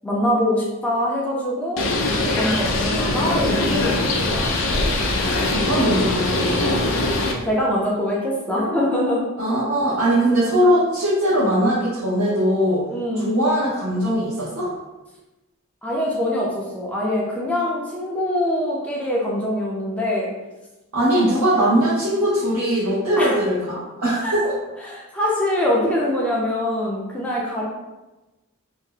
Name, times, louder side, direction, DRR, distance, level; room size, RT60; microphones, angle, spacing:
voice 1, 0.0-1.9 2.2-4.4 7.4-9.3 12.9-13.4 15.8-20.3 21.1-21.3 23.2-23.4 24.2-24.5 24.8-27.6, left 1 dB, 5° left, -5 dB, 0.5 m, -24 dB
Bird, 1.8-7.3, left 2 dB, 60° left, 0.5 m, -22 dB
voice 2, 5.2-6.8 9.4-12.9 13.2-14.7 20.9-24.4, equal, 85° right, -9 dB, 0.8 m, -20 dB
2.7 x 2.0 x 3.7 m, 1.1 s
head